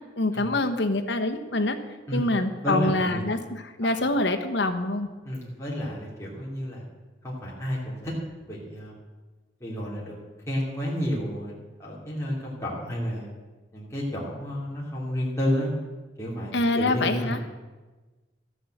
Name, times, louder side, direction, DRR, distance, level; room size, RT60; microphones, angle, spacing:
voice 1, 0.2-1.8 2.1-5.1 16.5-17.4, left 2 dB, 70° left, 6 dB, 1.1 m, -25 dB
voice 2, 2.6-3.2 5.2-6.8 7.2-8.1 8.4-8.9 9.6-10.1 10.5-13.3 13.7-15.7 16.2-17.3, equal, 15° left, -5 dB, 2.9 m, -30 dB
13.5 x 7.8 x 7.9 m, 1.2 s
head